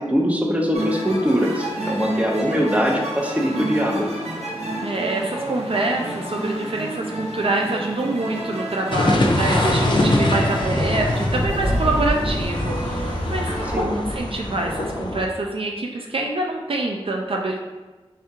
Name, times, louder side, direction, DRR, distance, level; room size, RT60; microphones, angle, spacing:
voice 1, 0.0-4.1 13.7-14.0, equal, 10° right, 0 dB, 0.7 m, -22 dB
sound 1, 0.7-13.7, right 1 dB, 80° right, 0.7 m, -30 dB
voice 2, 4.8-17.6, right 2 dB, 60° right, 0 dB, 0.4 m, -26 dB
sound 2, 8.9-15.3, left 1 dB, 45° left, 0.6 m, -23 dB
3.5 x 3.5 x 2.8 m, 1.2 s
cardioid pair, 40°, 11 cm